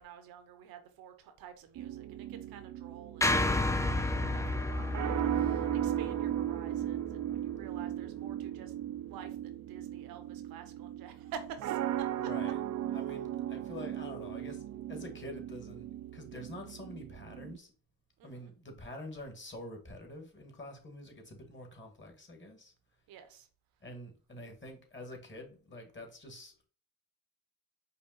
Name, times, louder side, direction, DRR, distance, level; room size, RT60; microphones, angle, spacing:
voice 1, 0.0-8.7 9.1-12.1 18.2-18.5 23.1-23.5, right 8 dB, 85° right, 0.9 m, -50 dB
sound 1, 1.8-17.6, right 12 dB, 55° right, 0.4 m, -37 dB
sound 2, 3.2-7.5, left 2 dB, 10° left, 0.5 m, -32 dB
voice 2, 5.3-5.7 12.2-15.9 16.1-17.7 18.2-22.7 23.8-26.5, left 1 dB, 30° left, 1.7 m, -47 dB
5.2 x 2.3 x 4.2 m
supercardioid pair, 55°, 35 cm